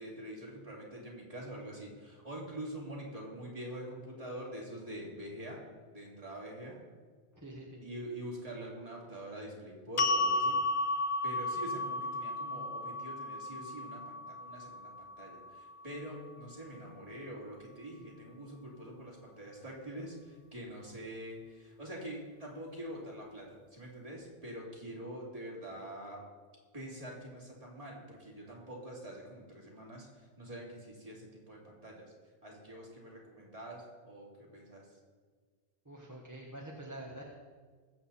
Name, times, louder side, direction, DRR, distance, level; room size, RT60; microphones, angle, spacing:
voice 1, 0.0-5.6 5.9-6.8 7.8-10.6 11.2-26.2 26.7-30.1 30.4-32.1 32.4-34.9, right 1 dB, 35° right, -4 dB, 3.3 m, -45 dB
voice 2, 7.3-7.9 35.8-37.2, right 1 dB, 15° right, -3 dB, 1.5 m, -46 dB
sound 1, 10.0-16.2, left 2 dB, 45° left, 0.4 m, -34 dB
20.5 x 8.0 x 4.3 m, 1.5 s
omnidirectional pair, 1.1 m